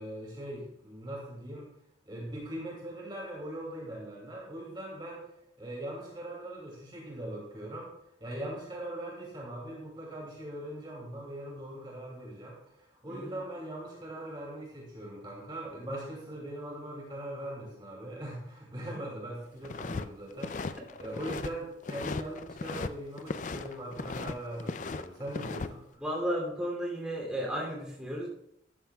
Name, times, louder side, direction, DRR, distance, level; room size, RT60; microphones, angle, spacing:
voice 1, 0.0-1.7 2.0-5.2 5.6-7.9 8.2-26.0, right 1 dB, 25° right, -3 dB, 2.5 m, -41 dB
voice 2, 13.1-13.4 26.0-28.3, equal, 5° right, -3 dB, 2.8 m, -33 dB
sound 1, 19.6-20.1 20.3-21.5 21.8-22.9 23.2-24.3 24.6-25.7, left 3 dB, 40° left, 0.4 m, -37 dB
13.5 x 12.0 x 2.3 m, 0.78 s
head